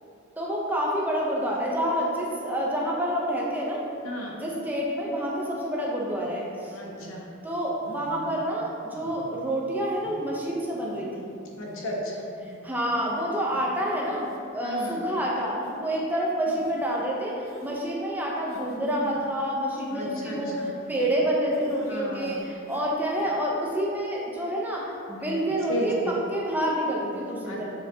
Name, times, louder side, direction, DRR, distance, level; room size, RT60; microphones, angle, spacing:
voice 1, 0.4-3.9 4.4-6.8 7.4-11.4 12.4-14.3 14.5-27.7, equal, 10° right, -4 dB, 0.6 m, -28 dB
voice 2, 4.0-4.4 6.7-7.3 11.6-12.3 14.6-15.0 19.9-20.7 21.9-22.4 25.7-26.1 27.4-27.7, equal, 65° left, -2 dB, 1.0 m, -33 dB
sound 1, 7.0-7.2 7.8-8.4 8.9-9.4 9.9-10.2 10.8-11.0 11.5-12.0 12.5-12.6 13.0-13.2 13.5-13.6 14.0-14.4 14.7-14.9 15.6-15.8 16.4-17.0 17.4-17.8 18.5-19.2 19.7-21.2 21.5-21.9 22.2-22.9 23.1-23.3, right 2 dB, 70° right, 0.7 m, -45 dB
6.9 x 4.9 x 2.7 m, 2.6 s
head